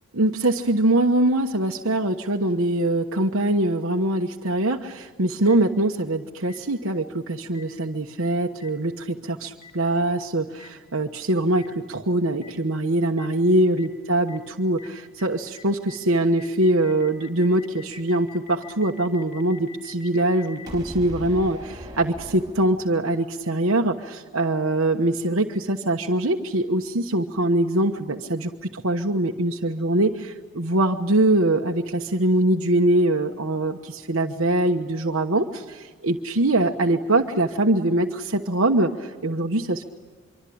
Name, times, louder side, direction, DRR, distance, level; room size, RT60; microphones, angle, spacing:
voice 1, 0.1-39.8, right 1 dB, 60° right, 2 dB, 1.2 m, -23 dB
Boom, 5.5-5.6 6.5-6.6 7.5-7.6 8.6-8.7 9.6-9.7 10.6-10.7 11.6-11.7 12.4-12.5 13.2-13.3 13.8-13.9 14.3-14.4 14.8-14.9 15.2-15.3 15.5-23.1, left 1 dB, 15° right, 4.5 m, -42 dB
25.5 x 24.5 x 8.7 m, 1.4 s
head